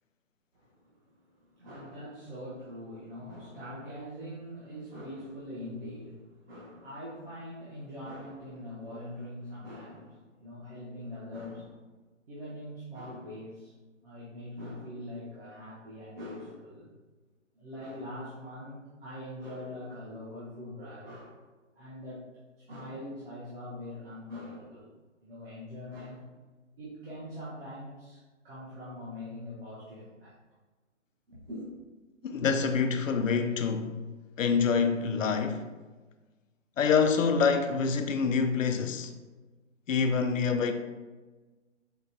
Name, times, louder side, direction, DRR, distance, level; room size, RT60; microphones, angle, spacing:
voice 1, 0.5-1.1 1.5-11.9 12.3-13.7 14.0-16.9 17.6-21.4 21.7-22.2 22.7-24.9 25.2-26.3 26.8-30.4 31.3-31.6, left 1 dB, 50° right, 1.1 m, -43 dB
voice 2, 32.2-34.0 34.4-35.7 36.8-39.1 39.9-40.7, left 5 dB, 85° left, 0.5 m, -26 dB
5.1 x 2.3 x 2.6 m
hypercardioid pair, 160°, 38 cm